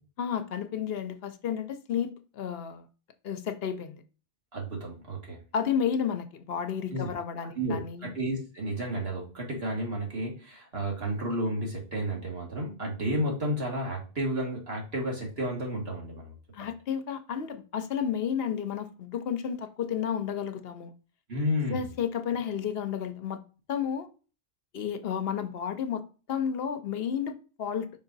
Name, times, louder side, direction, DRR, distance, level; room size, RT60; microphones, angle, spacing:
voice 1, 0.2-2.9 3.2-4.0 5.5-8.1 16.5-20.9 21.7-23.4 23.7-24.1 24.7-27.9, left 8 dB, 70° left, 0.9 m, -32 dB
voice 2, 4.5-5.4 6.9-7.1 7.6-16.7 21.3-21.8, equal, 75° right, 2.1 m, -32 dB
5.2 x 4.8 x 4.0 m
omnidirectional pair, 1.0 m